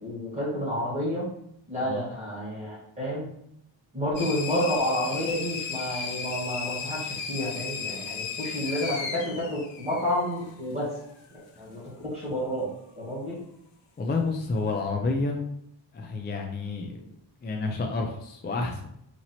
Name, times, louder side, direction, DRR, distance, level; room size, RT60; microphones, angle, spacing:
voice 1, 0.0-1.2 1.7-3.3 3.9-10.9 11.3-12.7 13.0-13.4, equal, 15° right, -8 dB, 1.4 m, -30 dB
sound 1, 4.2-10.5, left 5 dB, 90° left, 0.8 m, -35 dB
voice 2, 14.0-15.4 15.9-17.1 17.4-18.8, left 3 dB, 25° left, 2 dB, 0.3 m, -29 dB
2.9 x 2.8 x 4.0 m, 0.73 s
wide cardioid pair, 165°, 45 cm